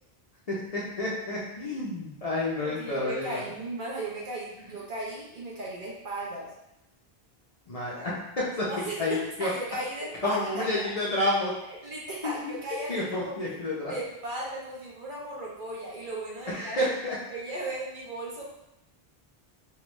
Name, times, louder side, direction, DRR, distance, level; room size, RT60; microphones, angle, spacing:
voice 1, 0.5-3.5 7.7-8.1 8.4-8.7 9.0-9.5 10.2-11.5 12.2-12.5 12.9-13.9 16.5-17.2, left 2 dB, 45° left, -6 dB, 0.6 m, -30 dB
voice 2, 2.6-6.5 8.7-10.6 11.7-13.6 13.9-16.9 17.3-18.5, right 2 dB, 55° right, -4 dB, 0.9 m, -36 dB
3.3 x 2.3 x 3.0 m, 0.87 s
omnidirectional pair, 1.0 m